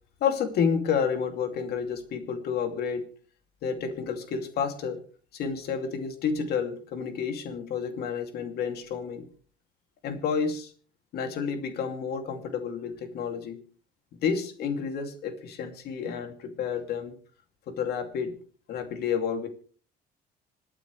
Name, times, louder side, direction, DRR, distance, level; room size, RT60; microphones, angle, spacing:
voice 1, 0.2-3.1 3.6-5.0 5.3-9.3 10.0-10.7 11.1-13.6 14.1-17.1 17.7-18.4 18.7-19.5, left 6 dB, 70° left, 6 dB, 2.6 m, -30 dB
26.5 x 9.1 x 3.3 m, 0.41 s
cardioid pair, 110°, 17 cm